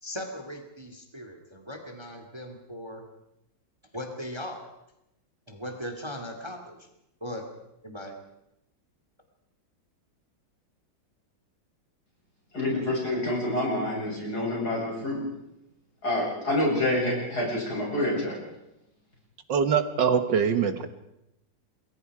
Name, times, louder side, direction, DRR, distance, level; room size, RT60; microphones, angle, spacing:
voice 1, 0.0-3.0 3.9-4.7 5.5-6.9 7.2-7.5 7.8-8.2, left 1 dB, 15° right, 5 dB, 2.4 m, -38 dB
voice 2, 12.5-15.2 16.0-18.4, left 1 dB, 55° left, -2 dB, 8.5 m, -27 dB
voice 3, 19.5-20.9, right 7 dB, 70° right, 10 dB, 2.0 m, -23 dB
28.5 x 21.5 x 4.9 m, 0.85 s
omnidirectional pair, 2.0 m